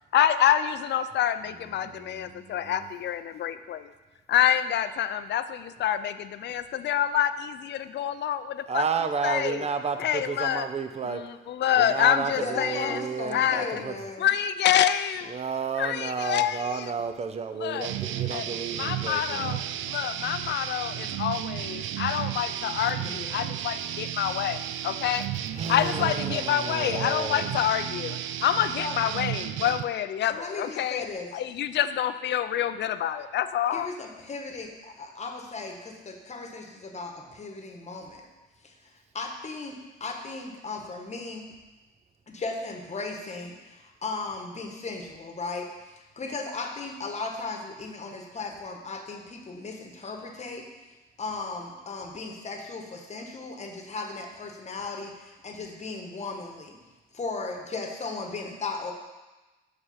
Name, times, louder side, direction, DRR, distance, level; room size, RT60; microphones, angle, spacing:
voice 1, 0.1-3.9 4.3-8.8 9.2-9.6 10.0-10.6 11.1-13.0 13.3-13.8 14.2-15.3 15.8-16.9 17.6-17.9 18.3-18.4 18.8-25.3 25.7-31.1 31.3-33.9, left 10 dB, 60° left, 12 dB, 0.5 m, -27 dB
voice 2, 1.5-2.9 8.7-11.2 11.8-14.0 15.3-19.6 25.5-27.5, right 5 dB, 35° right, 9 dB, 0.6 m, -32 dB
voice 3, 12.3-14.3 22.9-23.5 28.8-29.0 30.3-31.3 33.7-38.3 38.6-41.5 42.3-50.7 51.2-56.7 57.1-58.9, left 3 dB, 35° left, 3 dB, 1.2 m, -36 dB
sound 1, 17.8-29.8, right 11 dB, 75° right, 0.4 m, -33 dB
6.5 x 4.9 x 5.7 m, 1.1 s
cardioid pair, 90°, 20 cm